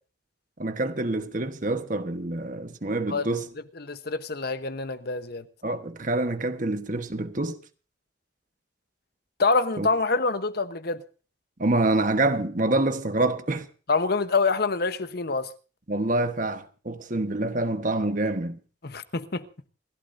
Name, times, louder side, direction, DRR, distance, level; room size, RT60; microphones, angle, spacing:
voice 1, 0.6-3.5 5.6-7.6 9.8-9.9 11.6-13.7 15.9-18.6, right 2 dB, 40° right, 1.2 m, -26 dB
voice 2, 3.8-5.4 9.4-11.0 13.9-15.5 18.8-19.4, left 4 dB, 55° left, 1.0 m, -26 dB
28.0 x 12.5 x 2.6 m
head